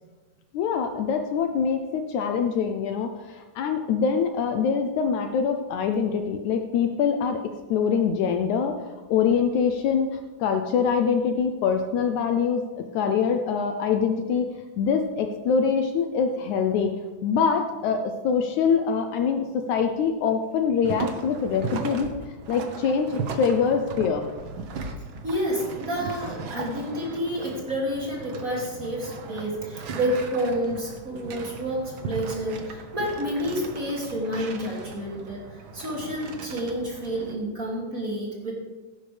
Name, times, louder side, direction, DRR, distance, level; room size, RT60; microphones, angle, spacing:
voice 1, 0.5-8.8 9.1-14.5 14.8-22.1 22.5-24.3, left 6 dB, 75° left, 6 dB, 1.9 m, -24 dB
sound 1, 20.8-37.4, right 4 dB, 70° right, 1.2 m, -37 dB
voice 2, 25.2-35.4 35.7-38.5, equal, 25° right, -4 dB, 2.7 m, -29 dB
16.5 x 10.5 x 3.4 m, 1.3 s
omnidirectional pair, 3.7 m